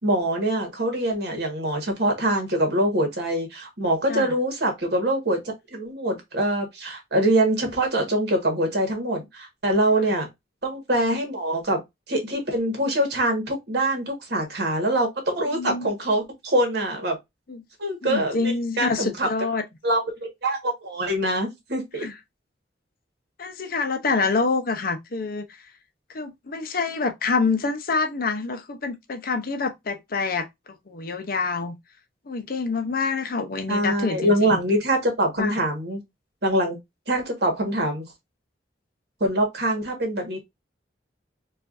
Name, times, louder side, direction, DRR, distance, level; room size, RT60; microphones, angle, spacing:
voice 1, 0.0-10.3 10.6-11.8 12.1-17.2 17.8-19.3 19.8-22.1 33.7-36.0 36.4-36.8 37.1-38.0 39.2-40.4, right 1 dB, 60° right, 1.5 m, -24 dB
voice 2, 15.5-15.9 17.5-17.6 18.0-19.6 22.0-22.1 23.4-25.5 26.1-30.5 30.9-31.7 32.3-34.6 35.4-35.5, left 4 dB, 50° left, 0.6 m, -26 dB
4.5 x 2.5 x 2.5 m
head